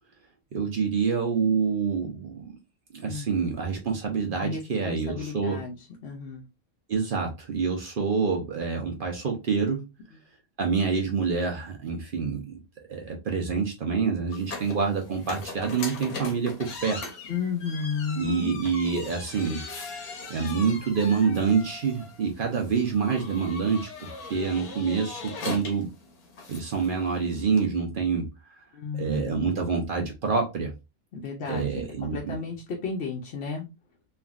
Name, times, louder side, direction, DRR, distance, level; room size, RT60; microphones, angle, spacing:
voice 1, 0.5-2.6 2.9-5.6 6.9-9.9 10.6-12.6 12.9-17.0 18.2-19.6 20.3-25.9 26.5-28.3 29.0-30.7 31.5-32.3, right 5 dB, 55° right, 1 dB, 0.6 m, -27 dB
voice 2, 4.4-5.8 6.0-6.4 17.3-18.5 28.7-29.5 31.1-33.7, left 5 dB, 60° left, -1 dB, 0.7 m, -33 dB
sound 1, 14.3-27.7, left 3 dB, 90° left, 1.3 m, -40 dB
3.4 x 2.3 x 2.3 m, 0.25 s
omnidirectional pair, 1.5 m